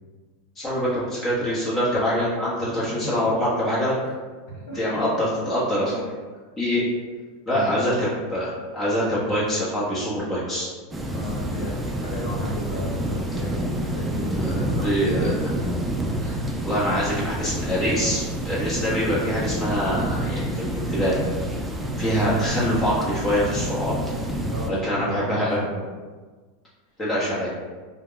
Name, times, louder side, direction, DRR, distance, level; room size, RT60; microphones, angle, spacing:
voice 1, 0.6-4.1 4.7-6.1 6.6-6.8 7.5-10.7 14.6-15.3 16.2-16.3 16.6-21.2 22.0-23.9 24.7-25.6 27.0-27.5, equal, 25° left, -7 dB, 0.8 m, -24 dB
voice 2, 2.8-3.3 4.5-5.0 7.5-7.6 11.1-15.3 24.4-25.8, equal, 80° left, -6 dB, 0.9 m, -34 dB
sound 1, 10.9-24.7, right 1 dB, 10° right, 0.3 m, -28 dB
2.3 x 2.1 x 3.7 m, 1.4 s
hypercardioid pair, 110°, 0 cm